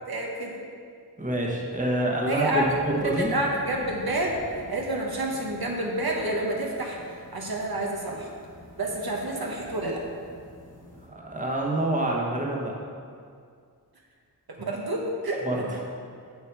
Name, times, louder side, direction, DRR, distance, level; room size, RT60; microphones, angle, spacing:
voice 1, 0.1-0.6 2.3-2.7 3.0-8.3 8.8-10.0 14.5-15.5, right 1 dB, 65° right, -1 dB, 1.2 m, -29 dB
voice 2, 1.2-3.3 11.0-12.8 15.4-15.6, right 1 dB, 20° right, -2 dB, 1.3 m, -27 dB
sound 1, 2.4-11.1, left 1 dB, 50° left, 1.4 m, -47 dB
6.9 x 6.9 x 4.7 m, 2.2 s
wide cardioid pair, 75°, 39 cm